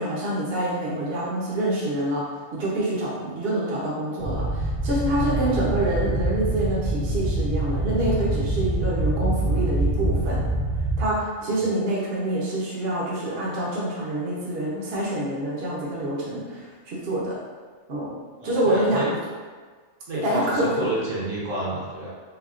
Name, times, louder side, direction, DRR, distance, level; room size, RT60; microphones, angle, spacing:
voice 1, 0.0-2.3 2.5-10.4 11.0-17.4 17.9-19.1 20.1-20.9, right 1 dB, 55° right, -6 dB, 0.9 m, -26 dB
sound 1, 4.2-11.0, right 1 dB, 30° right, 0.5 m, -25 dB
voice 2, 18.4-19.1 20.1-22.1, right 1 dB, 70° right, -6 dB, 1.3 m, -30 dB
3.4 x 3.4 x 2.4 m, 1.5 s
omnidirectional pair, 1.4 m